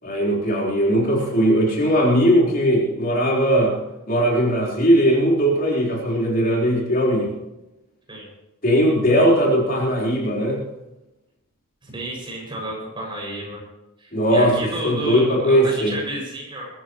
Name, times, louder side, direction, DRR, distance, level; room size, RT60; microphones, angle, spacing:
voice 1, 0.0-3.7 4.1-7.3 8.6-10.6 14.1-14.5 14.8-15.9, equal, 40° left, -3 dB, 4.3 m, -19 dB
voice 2, 11.8-13.6 14.0-16.7, right 1 dB, 20° right, -2 dB, 6.8 m, -31 dB
22.0 x 14.0 x 3.2 m, 0.94 s
head